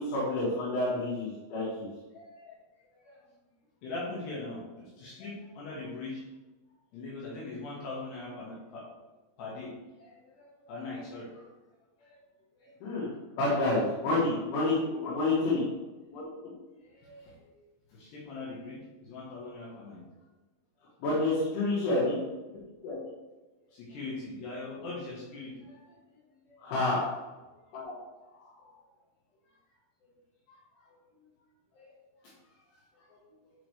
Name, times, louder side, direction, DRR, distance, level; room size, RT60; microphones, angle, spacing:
voice 1, 0.0-1.9 12.8-15.6 21.0-22.2 26.6-27.1, left 2 dB, 85° left, -8 dB, 4.4 m, -28 dB
voice 2, 2.1-2.6 3.1-3.2 3.8-6.2 6.9-8.9 9.4-9.7 10.0-11.5 12.0-12.2 12.6-12.7 15.0-15.1 15.5-15.6 16.1-16.5 16.8-17.5 17.9-20.0 22.0-22.1 22.5-23.0 23.7-26.2 26.5-26.6 27.7-28.0 28.3-28.9 30.0-30.1 30.5-31.3 31.7-31.9 32.2-32.6 32.9-33.5, left 3 dB, 70° left, -6 dB, 3.6 m, -42 dB
11.0 x 5.0 x 3.3 m, 1.1 s
omnidirectional pair, 5.4 m